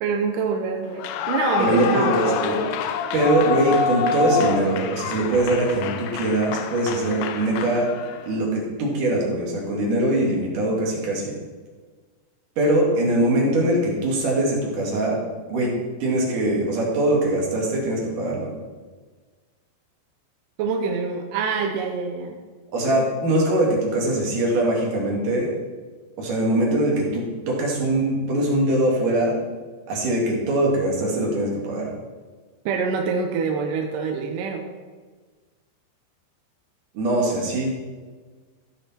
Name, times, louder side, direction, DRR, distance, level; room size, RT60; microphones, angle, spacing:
voice 1, 0.0-2.2 20.6-22.3 32.7-34.6, right 5 dB, 80° right, 3 dB, 2.0 m, -25 dB
Clapping / Cheering / Applause, 0.9-8.3, left 6 dB, 80° left, 2.4 m, -27 dB
voice 2, 1.6-2.6 3.1-7.9 8.3-11.4 12.6-15.2 15.5-15.7 16.0-18.5 22.7-25.5 26.2-29.4 29.9-31.9 36.9-37.7, right 1 dB, 55° right, -3 dB, 3.5 m, -22 dB
14.5 x 6.5 x 4.4 m, 1.4 s
omnidirectional pair, 4.8 m